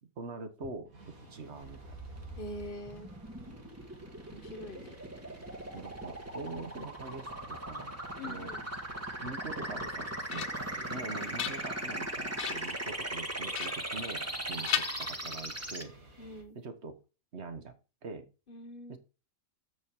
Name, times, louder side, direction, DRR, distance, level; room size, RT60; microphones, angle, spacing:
voice 1, 0.2-2.0 5.7-8.0 8.2-8.5 9.2-15.9 16.5-17.0 17.3-17.7 18.0-18.3 18.9-19.0, right 3 dB, 50° right, 9 dB, 1.5 m, -44 dB
sound 1, 0.8-16.4, right 1 dB, 80° right, 2.3 m, -55 dB
sound 2, 1.6-15.8, right 1 dB, 10° right, 1.2 m, -39 dB
voice 2, 2.4-3.1 4.3-4.9 8.2-8.7 16.2-16.6 18.5-19.0, left 1 dB, 40° left, 10 dB, 1.1 m, -44 dB
sound 3, 9.8-10.8 11.2-12.0 12.4-12.8 13.5-14.4 14.7-15.6, left 10 dB, 70° left, 0.5 m, -37 dB
7.5 x 6.4 x 4.8 m, 0.31 s
omnidirectional pair, 1.5 m